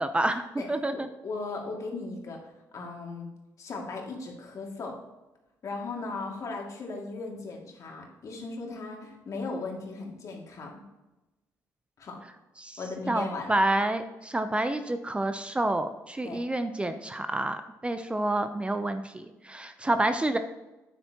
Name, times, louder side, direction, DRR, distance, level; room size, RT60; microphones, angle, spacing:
voice 1, 0.0-0.4 0.7-1.1 12.6-12.8 13.1-20.4, right 1 dB, 15° right, 9 dB, 0.6 m, -28 dB
voice 2, 0.9-3.3 3.6-5.0 5.6-10.8 12.0-12.2 12.8-13.6 16.2-16.4, left 3 dB, 55° left, 0 dB, 2.4 m, -37 dB
9.0 x 8.3 x 3.0 m, 1.0 s
supercardioid pair, 70°, 7 cm